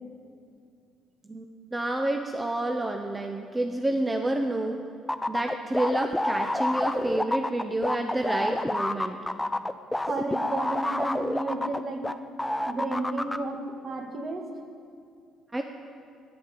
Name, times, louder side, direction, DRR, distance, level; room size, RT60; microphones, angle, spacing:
voice 1, 1.2-4.8 5.3-9.2 10.5-10.6 15.5-15.6, right 1 dB, 20° right, 4 dB, 0.8 m, -29 dB
sound 1, 5.1-12.1 12.4-13.4, left 1 dB, 10° left, 0.5 m, -28 dB
voice 2, 10.0-12.1 12.6-14.5, right 2 dB, 45° right, 4 dB, 1.5 m, -32 dB
9.0 x 8.2 x 6.8 m, 2.4 s
supercardioid pair, 60°, 0 cm